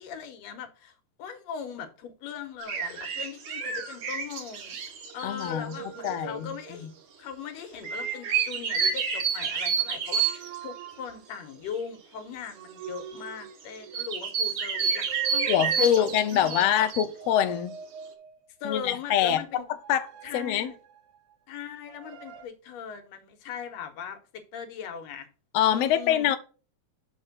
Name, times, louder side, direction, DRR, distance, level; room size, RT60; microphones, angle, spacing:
voice 1, 0.0-4.8 5.1-6.9 7.2-16.9 18.6-19.6 20.2-20.8 21.5-25.3 25.7-26.3, left 7 dB, 70° left, 2.0 m, -40 dB
sound 1, 2.6-5.8 6.0-6.1 7.8-10.6 11.7-11.8 12.8-13.2 13.9-17.1, right 6 dB, 55° right, 1.5 m, -29 dB
sound 2, 3.6-4.5 5.0-7.1 7.7-8.6 9.9-11.4 12.5-14.2 14.7-16.5 17.1-18.6 19.5-21.4 21.9-22.5, right 9 dB, 85° right, 2.3 m, -44 dB
voice 2, 5.2-5.7 6.0-6.5 15.5-17.8 18.6-19.4 19.9-20.1 20.3-20.7 25.5-26.4, left 10 dB, 85° left, 1.4 m, -24 dB
6.5 x 4.4 x 5.9 m
omnidirectional pair, 3.5 m